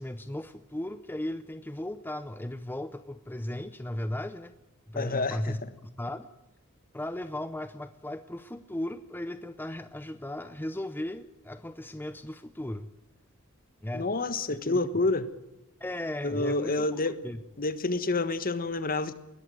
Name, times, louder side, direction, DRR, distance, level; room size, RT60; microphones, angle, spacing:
voice 1, 0.0-4.5 4.9-6.3 6.9-12.9 13.8-14.1 14.6-15.0 15.8-16.9 17.2-17.4, left 1 dB, 10° left, 12 dB, 0.6 m, -36 dB
voice 2, 4.9-5.6 13.9-15.3 16.2-17.1 17.6-19.1, left 2 dB, 40° left, 13 dB, 1.4 m, -28 dB
20.5 x 14.0 x 9.3 m, 0.96 s
head